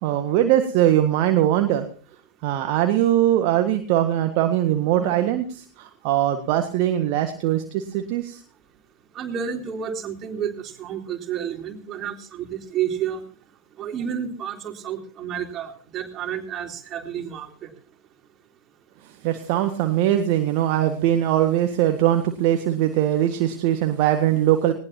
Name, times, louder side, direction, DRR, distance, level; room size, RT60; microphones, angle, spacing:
voice 1, 0.0-1.8 2.4-8.4 19.0-24.7, right 12 dB, 45° right, 6 dB, 1.7 m, -21 dB
voice 2, 9.1-13.2 13.8-17.7, right 8 dB, 30° right, 3 dB, 3.7 m, -30 dB
20.0 x 19.5 x 2.9 m, 0.42 s
figure-of-eight pair, 90°, 0 cm